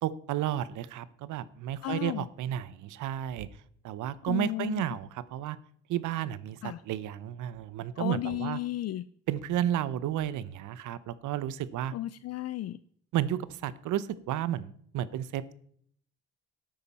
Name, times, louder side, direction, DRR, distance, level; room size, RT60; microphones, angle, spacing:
voice 1, 0.0-3.5 3.8-5.6 5.9-8.6 9.3-11.9 13.1-15.5, right 11 dB, 80° right, 17 dB, 0.8 m, -32 dB
voice 2, 1.8-2.3 4.3-4.8 6.6-6.8 8.0-9.0 11.9-12.8, left 14 dB, 55° left, 15 dB, 0.4 m, -33 dB
12.5 x 8.8 x 4.2 m, 0.63 s
cardioid pair, 105°, 30 cm